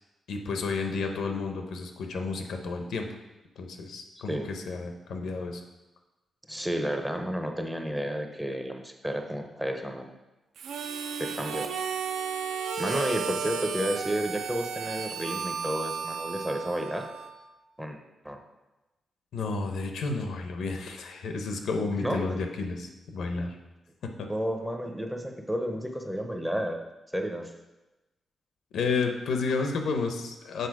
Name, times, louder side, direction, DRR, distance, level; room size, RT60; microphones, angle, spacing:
voice 1, 0.3-3.1 3.6-5.6 19.3-23.6 24.2-24.3 28.7-30.7, left 4 dB, 80° left, 5 dB, 0.7 m, -31 dB
voice 2, 6.5-10.1 11.2-11.7 12.8-17.1 17.8-18.0 18.2-18.4 22.0-22.4 24.3-26.8 27.1-27.5, equal, 5° right, 4 dB, 0.5 m, -31 dB
Harmonica, 10.6-17.5, right 6 dB, 85° right, 0.4 m, -34 dB
6.7 x 4.0 x 4.7 m, 1.0 s
wide cardioid pair, 170°, 0 cm